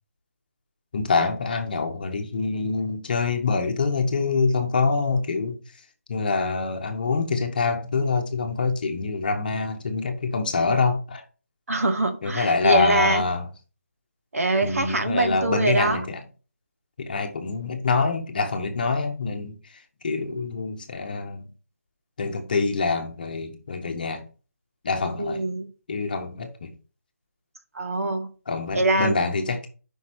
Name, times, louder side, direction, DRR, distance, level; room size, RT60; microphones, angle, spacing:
voice 1, 0.9-5.6 6.1-11.2 12.2-13.5 14.6-16.2 17.0-21.5 22.2-24.2 24.8-25.4 25.9-26.7 28.5-29.7, left 4 dB, 35° left, 1.1 m, -25 dB
voice 2, 11.7-13.2 14.3-16.0 25.2-25.7 27.7-28.3 28.7-29.2, right 2 dB, 65° right, 1.6 m, -24 dB
5.4 x 4.8 x 6.1 m
figure-of-eight pair, 170°, 8 cm